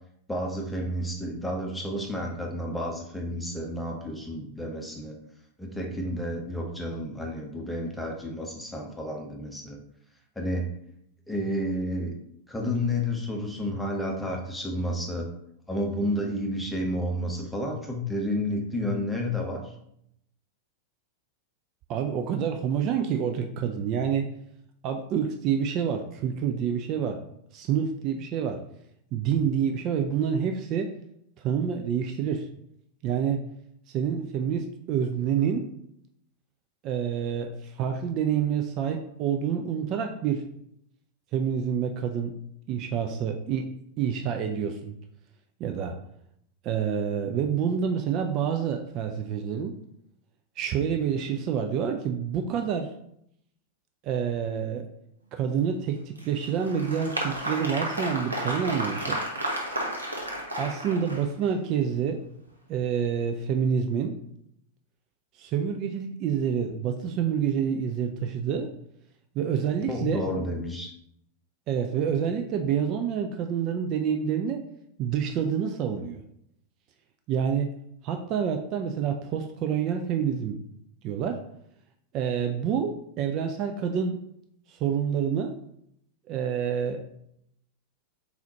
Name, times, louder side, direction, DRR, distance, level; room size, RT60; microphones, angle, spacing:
voice 1, 0.3-5.2 5.6-9.8 10.4-10.7 11.3-12.1 12.5-15.3 15.7-19.7 69.9-70.9, left 1 dB, 5° left, 0 dB, 0.9 m, -31 dB
voice 2, 21.9-24.3 24.8-27.2 27.5-28.6 29.1-30.9 31.4-32.5 33.0-33.4 33.9-35.7 36.8-40.4 41.3-42.3 42.7-43.7 44.0-44.9 45.6-46.0 46.6-49.7 50.6-52.9 54.0-54.9 55.3-59.2 60.6-62.2 62.7-64.1 65.4-68.7 69.3-70.2 71.7-74.6 75.0-76.2 77.3-77.7 78.0-80.6 81.0-81.4 82.1-84.2 84.7-85.5 86.3-87.0, right 7 dB, 40° right, 5 dB, 0.4 m, -27 dB
Applause, 56.2-61.5, right 1 dB, 80° right, 0.8 m, -32 dB
4.1 x 4.0 x 2.9 m, 0.72 s
figure-of-eight pair, 90°, 0 cm